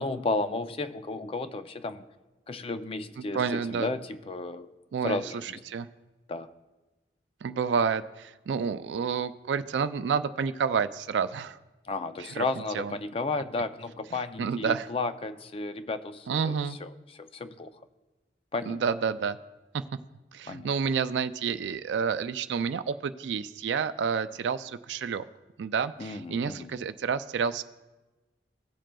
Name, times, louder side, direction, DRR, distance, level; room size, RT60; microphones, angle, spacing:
voice 1, 0.0-2.1 2.5-4.7 5.0-5.6 6.3-6.5 11.9-16.9 17.2-17.8 18.5-18.8 20.5-20.7 26.0-26.7, left 3 dB, 35° left, 11 dB, 0.4 m, -33 dB
voice 2, 3.2-3.9 4.9-5.9 7.4-11.6 12.2-12.4 12.7-13.0 14.1-14.9 16.3-16.8 18.7-19.4 19.7-19.8 20.3-25.3 25.6-27.6, right 6 dB, 85° right, 12 dB, 0.4 m, -29 dB
16.5 x 7.5 x 2.3 m, 1.1 s
head